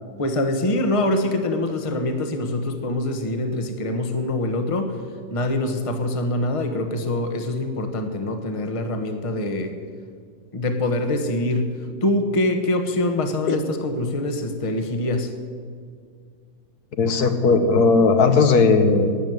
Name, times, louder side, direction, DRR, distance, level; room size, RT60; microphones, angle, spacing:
voice 1, 0.2-5.0 5.3-9.8 10.5-15.3, left 1 dB, 25° left, 6 dB, 1.1 m, -24 dB
voice 2, 17.0-19.1, left 4 dB, 75° left, 7 dB, 1.6 m, -17 dB
12.5 x 9.2 x 9.3 m, 2.1 s
omnidirectional pair, 1.7 m